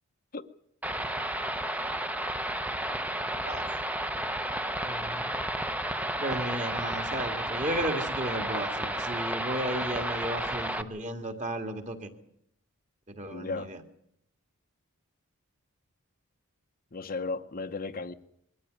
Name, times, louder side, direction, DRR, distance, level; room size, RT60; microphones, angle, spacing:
sound 1, 0.8-10.8, right 1 dB, 5° right, 0.8 m, -32 dB
voice 1, 3.4-3.8 4.9-5.4 6.2-12.1 13.1-13.8, right 1 dB, 30° right, 2.1 m, -34 dB
voice 2, 13.3-13.7 16.9-18.1, left 3 dB, 40° left, 0.8 m, -35 dB
22.0 x 14.0 x 9.5 m
head